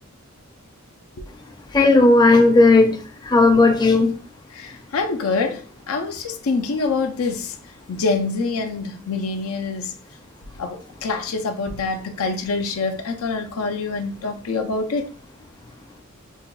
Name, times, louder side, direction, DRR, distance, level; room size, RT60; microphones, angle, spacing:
voice 1, 1.7-4.1, left 3 dB, 20° left, 0.5 m, -14 dB
voice 2, 4.6-7.5 7.9-10.0 10.6-15.1, left 4 dB, 85° left, 0.5 m, -25 dB
5.5 x 2.2 x 2.3 m
head